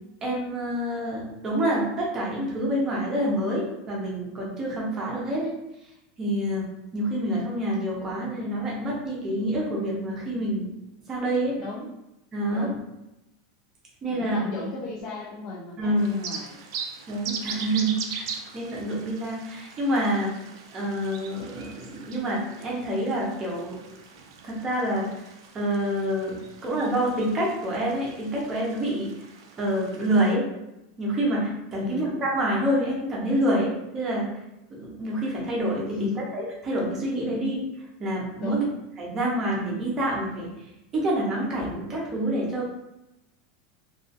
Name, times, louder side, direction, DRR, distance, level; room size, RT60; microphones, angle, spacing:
voice 1, 0.2-5.6 6.2-10.7 11.1-11.6 12.3-12.7 14.0-14.4 15.8-16.1 17.1-20.3 20.7-24.0 24.4-25.1 25.5-29.1 29.6-30.4 31.0-34.3 34.7-37.6 38.0-38.6 39.0-40.5 40.9-42.7, right 1 dB, 20° right, -4 dB, 0.6 m, -27 dB
voice 2, 12.5-12.9 14.1-16.5 31.8-32.1 35.9-36.2 37.3-37.4 38.4-38.7, left 3 dB, 30° left, -4 dB, 0.4 m, -35 dB
sound 1, 16.0-30.3, right 6 dB, 75° right, 0.4 m, -41 dB
2.4 x 2.3 x 2.5 m, 0.92 s
supercardioid pair, 170°, 2 cm